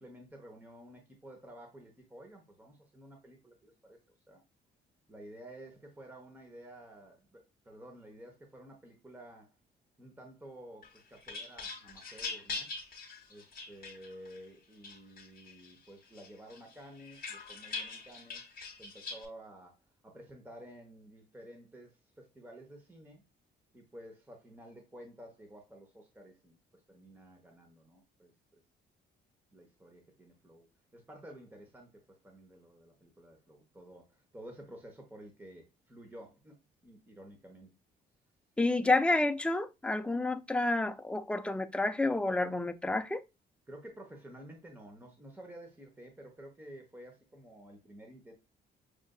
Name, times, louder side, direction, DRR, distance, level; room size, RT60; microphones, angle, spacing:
voice 1, 0.0-4.0 4.3-4.4 5.1-9.5 10.0-12.7 13.3-18.5 18.8-23.2 23.7-26.6 26.9-28.6 29.5-30.7 30.9-37.7 43.7-48.3, right 1 dB, 10° right, 1.0 m, -52 dB
sound 1, 10.8-14.4 14.8-15.7 16.1-19.2, left 3 dB, 50° left, 1.2 m, -43 dB
voice 2, 38.6-43.2, left 2 dB, 5° left, 0.4 m, -29 dB
6.2 x 2.5 x 2.3 m
cardioid pair, 90°, 20 cm